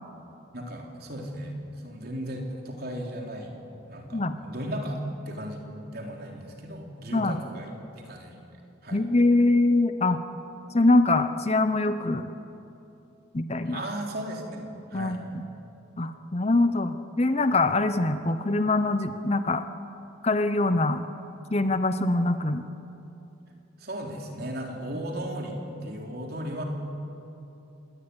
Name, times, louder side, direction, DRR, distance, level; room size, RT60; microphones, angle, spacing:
voice 1, 0.5-1.5 1.8-3.5 3.9-8.4 8.8-9.0 13.6-15.2 23.8-26.6, right 1 dB, 50° right, 1 dB, 3.7 m, -36 dB
voice 2, 8.9-10.2 10.7-12.3 13.3-13.8 14.9-15.4 16.0-19.6 20.2-21.0 21.5-22.6, left 2 dB, 30° left, 10 dB, 0.8 m, -23 dB
26.5 x 19.0 x 9.8 m, 2.9 s
head